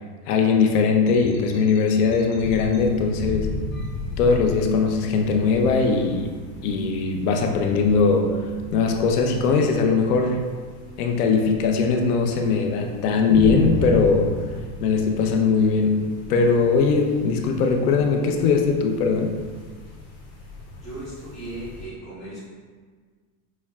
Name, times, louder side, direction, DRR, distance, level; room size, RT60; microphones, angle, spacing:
voice 1, 0.3-3.5 4.2-6.3 6.6-10.5 11.0-14.3 14.8-16.0 16.3-19.3, left 4 dB, 80° left, 3 dB, 0.7 m, -20 dB
sound 1, 1.0-2.8 3.7-4.6, left 2 dB, 55° left, 1.0 m, -41 dB
sound 2, 2.4-21.8, left 1 dB, 35° left, 1.0 m, -34 dB
voice 2, 20.8-22.4, right 2 dB, ahead, -15 dB, 0.3 m, -36 dB
5.8 x 3.1 x 2.4 m, 1.5 s
supercardioid pair, 180°, 45 cm